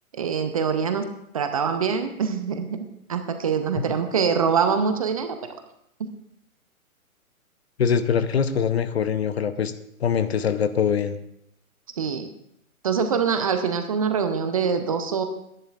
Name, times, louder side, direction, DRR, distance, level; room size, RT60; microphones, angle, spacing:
voice 1, 0.1-1.1 1.3-5.6 6.0-6.1 12.0-12.3 12.8-15.2, right 6 dB, 25° right, 8 dB, 0.6 m, -24 dB
voice 2, 7.8-9.7 10.0-11.2, left 7 dB, 45° left, 12 dB, 0.8 m, -23 dB
22.5 x 10.5 x 2.4 m, 0.75 s
figure-of-eight pair, 130°, 43 cm